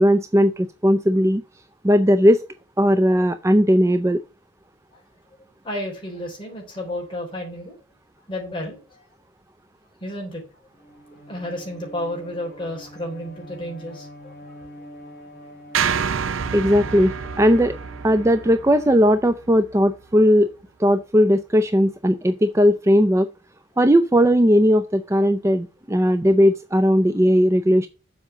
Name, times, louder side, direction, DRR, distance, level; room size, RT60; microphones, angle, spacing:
voice 1, 0.0-1.4 1.8-2.4 2.8-4.2 16.5-17.8 18.0-20.5 20.8-23.3 23.8-27.9, equal, 15° right, 9 dB, 0.4 m, -17 dB
voice 2, 5.6-7.8 8.3-9.0 10.0-10.4 11.3-14.6, left 1 dB, 25° left, -1 dB, 4.0 m, -32 dB
Bowed string instrument, 10.7-19.1, equal, 45° left, 3.3 m, -44 dB
sound 1, 15.7-20.0, right 7 dB, 85° right, 0.6 m, -28 dB
7.3 x 5.0 x 6.6 m, 0.32 s
head